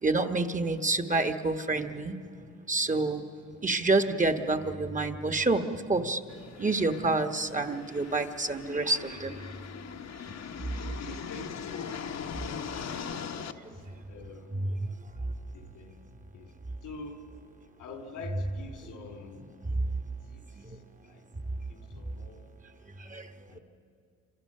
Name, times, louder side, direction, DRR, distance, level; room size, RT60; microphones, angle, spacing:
voice 1, 0.0-2.1 2.7-3.3 3.6-6.2 6.6-9.3 14.5-14.8 20.7-20.8 23.1-23.3, right 3 dB, 25° right, 8 dB, 1.3 m, -28 dB
sound 1, 6.3-13.5, left 7 dB, 60° left, 1.2 m, -41 dB
voice 2, 10.8-12.1 12.4-14.5 15.5-16.0 16.3-16.5 16.8-17.3 17.8-19.4 20.3-20.4 20.7-20.8 21.0-21.2 21.7-22.5 23.5-23.6, left 4 dB, 85° left, 5 dB, 3.1 m, -45 dB
27.5 x 26.0 x 6.7 m, 2.5 s
cardioid pair, 90°, 31 cm